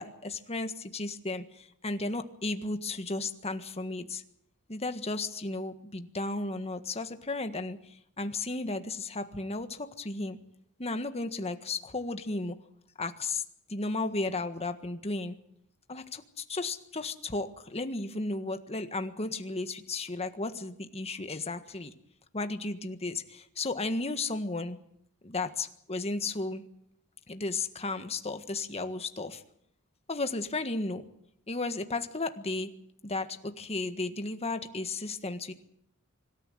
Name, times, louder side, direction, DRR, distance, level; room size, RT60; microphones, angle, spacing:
voice 1, 0.0-4.2 4.7-10.4 10.8-12.6 13.0-13.4 13.7-15.3 15.9-21.9 22.3-24.8 25.2-26.6 27.3-29.4 30.1-31.1 31.5-32.7 33.0-35.5, left 3 dB, 30° left, 8 dB, 1.6 m, -34 dB
25.0 x 13.5 x 9.2 m, 0.70 s
head